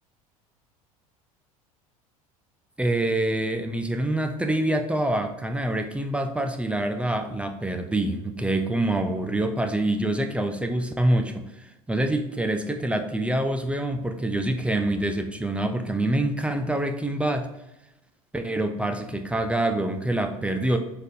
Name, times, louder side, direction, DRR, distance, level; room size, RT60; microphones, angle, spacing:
voice 1, 2.8-17.5 18.3-20.8, right 1 dB, 5° right, 5 dB, 0.4 m, -26 dB
4.9 x 4.0 x 2.7 m, 0.95 s
figure-of-eight pair, 70°, 19 cm